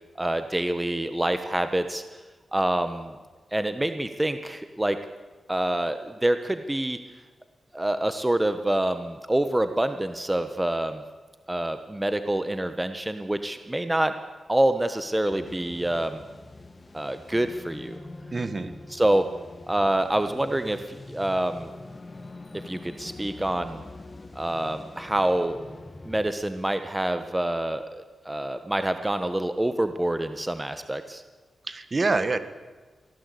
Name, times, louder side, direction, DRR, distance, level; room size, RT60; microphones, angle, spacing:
voice 1, 0.2-2.2 2.5-3.1 3.5-5.0 5.5-7.0 7.7-11.0 11.5-14.1 14.5-16.2 16.9-18.0 18.9-19.3 19.7-21.7 22.5-23.8 24.3-25.6 26.1-31.2, right 1 dB, 15° right, 9 dB, 1.2 m, -26 dB
sound 1, 15.3-26.3, left 2 dB, 30° left, 1.6 m, -44 dB
voice 2, 18.3-18.7 31.7-32.4, right 3 dB, 35° right, 11 dB, 1.8 m, -26 dB
24.0 x 17.0 x 8.4 m, 1.4 s
wide cardioid pair, 90°, 0 cm